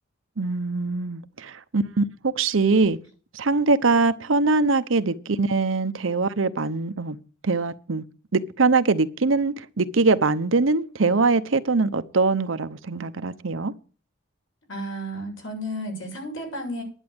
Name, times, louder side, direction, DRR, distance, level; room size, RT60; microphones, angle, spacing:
voice 1, 0.4-3.0 3.3-7.2 7.4-8.0 8.3-13.7, right 3 dB, 75° right, 0.8 m, -22 dB
voice 2, 14.7-16.8, equal, 70° left, 7.4 m, -32 dB
11.0 x 8.2 x 7.9 m
head